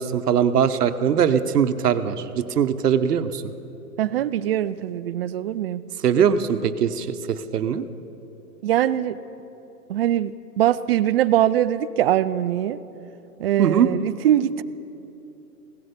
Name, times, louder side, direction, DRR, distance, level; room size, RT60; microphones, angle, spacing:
voice 1, 0.0-3.5 6.0-7.9 13.6-13.9, right 8 dB, 85° right, 11 dB, 0.9 m, -21 dB
voice 2, 4.0-5.8 8.6-9.2 9.9-12.8 13.4-14.6, right 11 dB, 40° right, 15 dB, 0.4 m, -22 dB
17.0 x 13.0 x 5.2 m, 3.0 s
hypercardioid pair, 135°, 46 cm